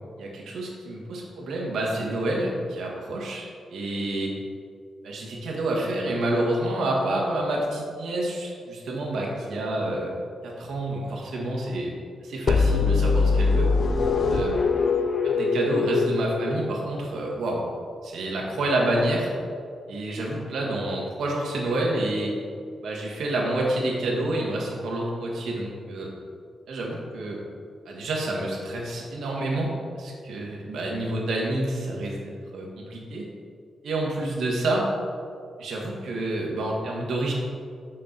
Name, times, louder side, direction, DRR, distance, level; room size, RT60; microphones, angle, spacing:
voice 1, 0.2-4.3 5.0-10.1 10.4-11.9 12.2-13.7 14.3-14.6 15.2-17.6 18.0-19.3 19.9-22.3 22.8-26.1 26.7-27.4 27.8-33.3 33.8-34.9 35.6-37.3, right 1 dB, 75° right, -2 dB, 1.4 m, -28 dB
sound 1, 12.5-17.2, left 4 dB, 45° left, 0.4 m, -23 dB
6.5 x 5.8 x 3.9 m, 2.2 s
wide cardioid pair, 165°, 0 cm